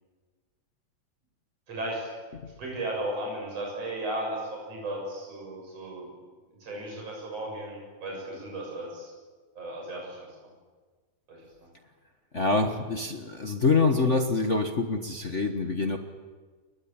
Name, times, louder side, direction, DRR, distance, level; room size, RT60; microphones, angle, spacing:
voice 1, 1.7-2.1 2.6-6.1 6.6-9.1 9.6-10.5 11.3-11.4, right 1 dB, 55° right, -1 dB, 8.2 m, -35 dB
voice 2, 12.3-16.0, left 3 dB, 45° left, 4 dB, 0.9 m, -25 dB
29.0 x 22.5 x 8.9 m, 1.4 s
omnidirectional pair, 3.4 m